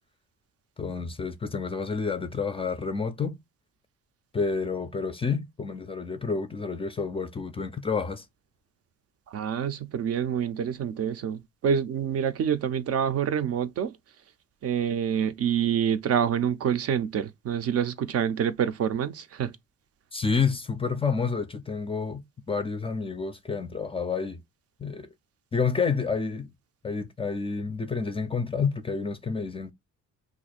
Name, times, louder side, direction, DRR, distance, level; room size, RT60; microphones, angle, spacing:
voice 1, 0.8-3.4 4.3-8.2 20.1-24.4 24.8-25.1 25.5-26.5 26.8-29.7, left 5 dB, 20° left, 0.4 m, -29 dB
voice 2, 9.3-13.9 14.6-19.5, right 8 dB, 55° right, 0.4 m, -27 dB
2.5 x 2.1 x 4.0 m
cardioid pair, 90°, 30 cm